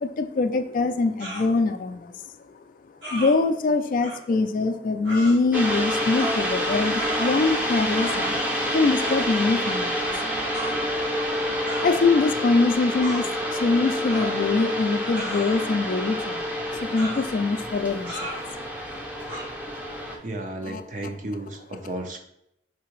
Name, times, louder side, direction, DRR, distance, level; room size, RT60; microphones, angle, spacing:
voice 1, 0.0-2.1 3.1-10.1 11.8-18.6 20.6-20.8, left 3 dB, 50° left, 8 dB, 0.3 m, -24 dB
sound 1, 1.2-1.5 3.0-3.3 4.0-4.2 5.0-5.4 6.2-6.5 7.0-7.6 7.9-8.4 9.0-9.3 10.5-10.7 11.7-11.9 13.0-13.3 14.1-14.6 15.2-15.8 17.0-17.3 18.1-18.5 19.3-19.4, right 1 dB, 80° right, 1.5 m, -35 dB
sound 2, 5.5-20.2, equal, 10° right, 0.6 m, -28 dB
voice 2, 20.2-22.2, right 1 dB, 45° right, 4 dB, 0.6 m, -33 dB
4.8 x 3.4 x 3.1 m, 0.78 s
head